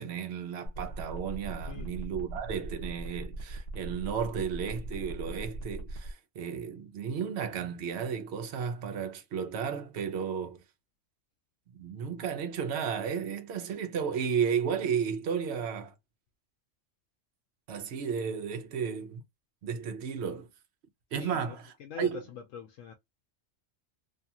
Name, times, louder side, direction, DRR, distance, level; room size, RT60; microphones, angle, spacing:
voice 1, 0.0-10.6 11.7-15.9 17.7-19.2 19.6-20.5 21.1-22.2, right 7 dB, 65° right, 0.9 m, -33 dB
sound 1, 0.7-6.1, right 2 dB, 55° left, 1.1 m, -40 dB
voice 2, 21.2-22.9, left 9 dB, 80° left, 0.9 m, -44 dB
2.7 x 2.4 x 2.6 m
omnidirectional pair, 1.3 m